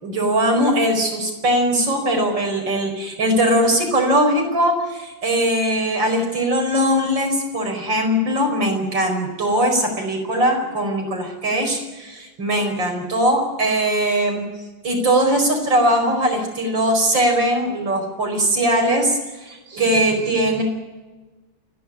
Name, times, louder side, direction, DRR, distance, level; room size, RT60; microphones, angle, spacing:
voice 1, 0.0-14.4 14.8-20.6, right 1 dB, 75° right, 3 dB, 5.6 m, -20 dB
29.0 x 11.0 x 9.8 m, 1.2 s
omnidirectional pair, 2.0 m